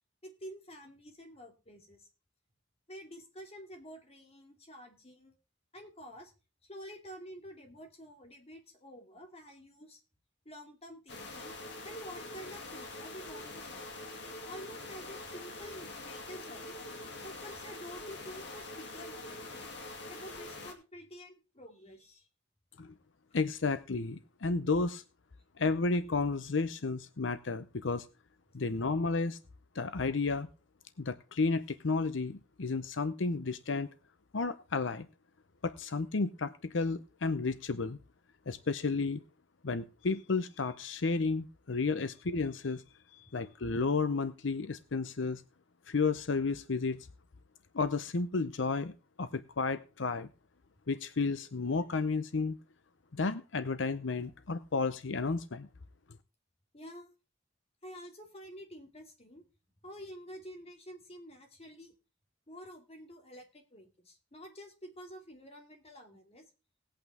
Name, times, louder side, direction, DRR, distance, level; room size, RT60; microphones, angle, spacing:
voice 1, 0.2-2.1 2.9-5.3 5.7-6.3 6.6-10.0 10.4-11.6 11.8-14.0 14.5-16.8 17.2-19.7 20.1-22.3 56.7-57.1 57.8-59.4 59.8-61.9 62.5-66.5, equal, 35° left, 3 dB, 2.6 m, -49 dB
sound 1, 11.1-20.7, left 2 dB, 65° left, 2.5 m, -44 dB
voice 2, 23.3-25.0 25.6-28.1 28.5-29.4 29.7-30.5 31.0-33.9 34.3-35.1 35.6-38.0 38.5-39.2 39.6-42.8 43.1-45.4 45.9-47.1 47.7-50.3 50.9-52.6 53.1-55.7, left 4 dB, 90° left, 12 dB, 0.8 m, -32 dB
18.5 x 8.6 x 3.6 m, 0.32 s
head